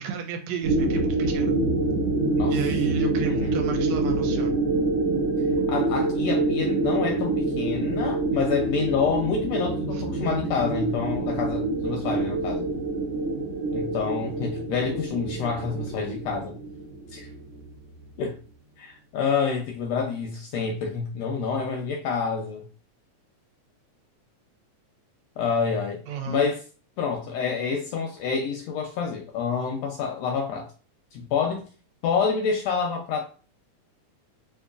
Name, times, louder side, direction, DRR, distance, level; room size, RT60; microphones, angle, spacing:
voice 1, 0.0-1.6 2.5-4.6 9.9-10.0 26.1-26.4, right 7 dB, 80° right, 1.9 m, -33 dB
sound 1, 0.6-17.6, right 2 dB, 65° right, 1.9 m, -26 dB
voice 2, 3.2-3.6 5.7-12.7 13.7-16.6 17.1-17.3 18.2-18.4 18.8-22.6 25.4-26.0 26.3-26.6 27.0-30.7 31.1-31.7 32.0-33.2, left 6 dB, 80° left, 1.5 m, -28 dB
4.4 x 2.7 x 2.4 m
omnidirectional pair, 3.3 m